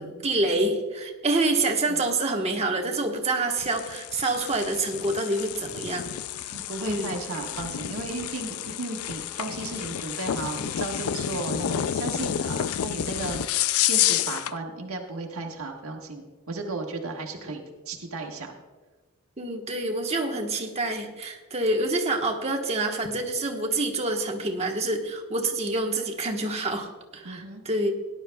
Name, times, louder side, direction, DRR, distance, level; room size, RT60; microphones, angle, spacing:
voice 1, 0.0-6.1 6.8-7.1 17.4-17.5 19.4-27.9, right 2 dB, 30° right, 2 dB, 1.2 m, -27 dB
sound 1, 3.6-14.6, left 11 dB, 75° left, 0.4 m, -30 dB
voice 2, 6.5-18.5 27.2-27.6, right 2 dB, 70° right, 1 dB, 1.5 m, -35 dB
18.0 x 11.5 x 2.3 m, 1.3 s
head